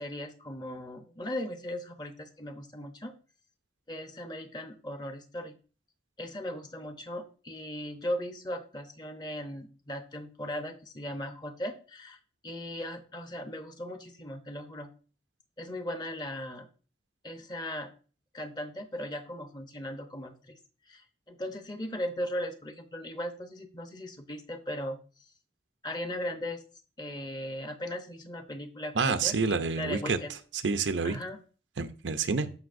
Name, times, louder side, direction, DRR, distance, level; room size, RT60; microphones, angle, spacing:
voice 1, 0.0-3.1 3.9-5.5 6.2-12.2 12.4-14.9 15.6-16.7 17.2-17.9 18.3-20.6 20.9-25.0 25.8-26.6 27.0-30.3 31.0-31.4, left 1 dB, 20° left, 0.8 m, -38 dB
voice 2, 28.9-30.2 30.5-31.2 31.8-32.5, right 4 dB, 90° right, 0.6 m, -28 dB
14.0 x 5.5 x 2.6 m
head